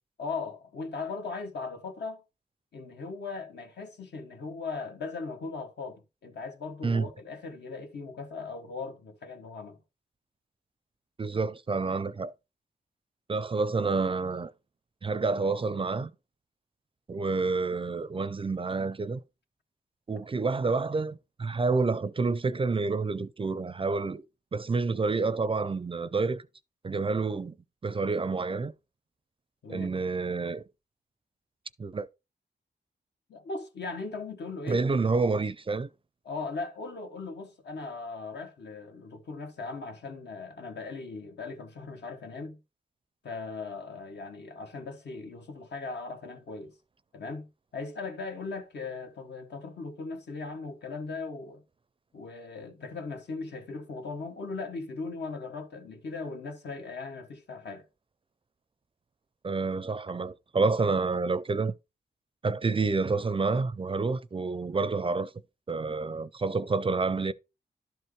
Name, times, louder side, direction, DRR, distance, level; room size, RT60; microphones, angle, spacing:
voice 1, 0.2-2.2 2.7-9.8 29.6-29.9 33.3-34.8 36.2-42.6 43.2-46.7 47.1-51.6 52.1-57.9, left 4 dB, 75° left, 1.3 m, -38 dB
voice 2, 11.2-12.3 13.3-14.5 15.0-16.1 17.1-19.2 20.1-24.3 24.5-26.4 26.8-27.6 27.8-28.7 29.7-30.6 31.8-32.1 34.7-35.9 59.4-61.7 62.4-65.3 65.7-67.3, right 4 dB, 30° right, 0.4 m, -28 dB
12.0 x 4.5 x 3.1 m
wide cardioid pair, 85°, 18 cm